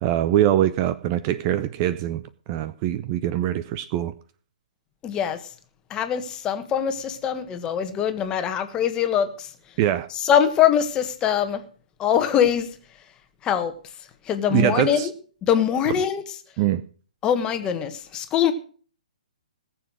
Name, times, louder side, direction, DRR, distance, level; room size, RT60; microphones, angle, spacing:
voice 1, 0.0-2.2 2.5-4.1 9.8-10.1 14.5-15.1 16.6-16.8, right 12 dB, 30° right, 0.6 m, -23 dB
voice 2, 5.0-5.4 5.9-9.5 10.2-11.6 12.0-12.7 13.4-13.7 14.3-15.0 15.4-16.2 17.2-18.5, left 9 dB, 20° left, 1.5 m, -22 dB
19.0 x 7.2 x 6.2 m
hypercardioid pair, 140°, 4 cm